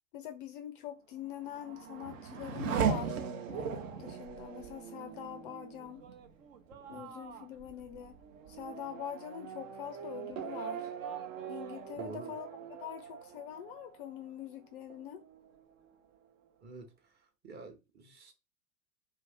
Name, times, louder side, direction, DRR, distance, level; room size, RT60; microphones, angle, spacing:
voice 1, 0.1-3.2 3.5-6.0 6.9-8.2 8.5-10.9 11.5-15.2, left 10 dB, 40° left, 0.4 m, -44 dB
Race car auto racing / Accelerating revving vroom, 1.3-14.5 14.9-15.6, right 6 dB, 60° right, 0.8 m, -39 dB
voice 2, 12.0-12.3 16.6-17.1 17.4-18.3, right 3 dB, 25° right, 0.7 m, -48 dB
2.7 x 2.6 x 3.5 m
figure-of-eight pair, 95°, 43 cm